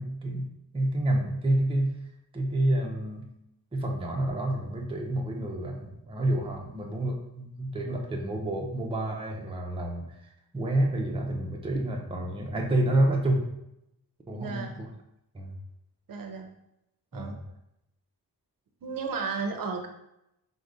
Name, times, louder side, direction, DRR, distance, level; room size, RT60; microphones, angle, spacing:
voice 1, 0.0-1.9 2.3-3.3 3.7-10.0 10.5-13.5 14.3-14.7 15.3-15.5 17.1-17.4, right 1 dB, 15° right, 0 dB, 0.5 m, -28 dB
voice 2, 14.3-14.8 16.1-16.5 17.1-17.4 18.8-19.9, right 5 dB, 55° right, 3 dB, 0.6 m, -34 dB
4.8 x 2.1 x 3.8 m, 0.83 s
wide cardioid pair, 120°, 40 cm